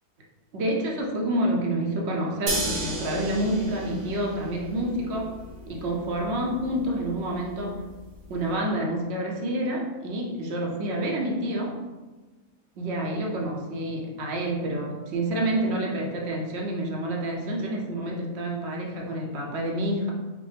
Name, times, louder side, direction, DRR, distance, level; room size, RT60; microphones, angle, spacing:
voice 1, 0.5-5.3 5.7-7.8 8.3-11.8 12.8-20.1, right 1 dB, 55° right, -1 dB, 0.8 m, -28 dB
sound 1, 2.5-8.5, right 1 dB, 70° right, 1.3 m, -35 dB
5.1 x 2.1 x 3.3 m, 1.3 s
omnidirectional pair, 1.6 m